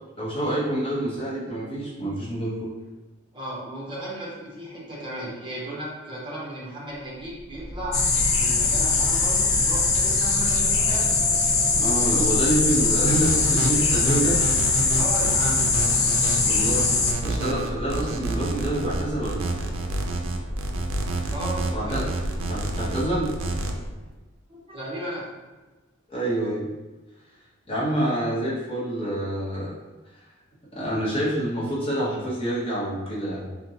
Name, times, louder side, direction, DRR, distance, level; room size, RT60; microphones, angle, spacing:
voice 1, 0.2-2.7 11.8-14.4 16.4-16.9 17.2-19.5 21.7-22.0 22.5-23.3 26.1-26.7 27.7-29.7 30.7-33.4, right 1 dB, 25° left, -7 dB, 0.9 m, -27 dB
voice 2, 3.3-8.0 8.3-11.1 14.9-15.7 21.3-22.2 24.5-25.3, right 1 dB, 25° right, -5 dB, 0.9 m, -35 dB
sound 1, 7.0-24.2, equal, ahead, 0.4 m, -34 dB
sound 2, 7.9-17.1, left 4 dB, 75° left, 0.6 m, -22 dB
sound 3, 13.1-23.7, right 2 dB, 75° right, 0.4 m, -30 dB
4.0 x 2.2 x 2.7 m, 1.2 s
head